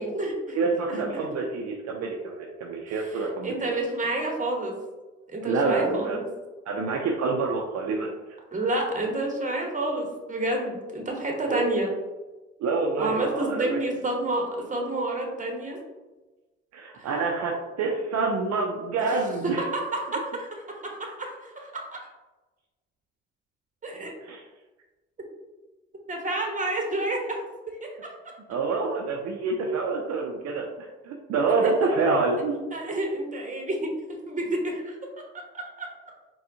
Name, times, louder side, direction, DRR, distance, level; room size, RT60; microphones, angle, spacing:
voice 1, 0.0-0.6 0.9-1.1 2.9-4.7 5.3-6.2 8.5-11.9 13.0-15.8 17.0-17.1 19.1-21.7 23.8-24.1 26.1-28.1 31.6-31.7 32.6-33.9 34.3-35.0 35.5-35.9, right 2 dB, 25° right, 1 dB, 1.1 m, -29 dB
voice 2, 0.5-3.5 5.4-6.2 6.7-8.1 11.5-11.7 12.6-13.8 16.7-19.6 24.2-24.4 28.5-30.7 31.0-32.6, right 3 dB, 60° right, 0 dB, 0.6 m, -27 dB
4.2 x 2.3 x 2.7 m, 1.2 s
hypercardioid pair, 55°, 30 cm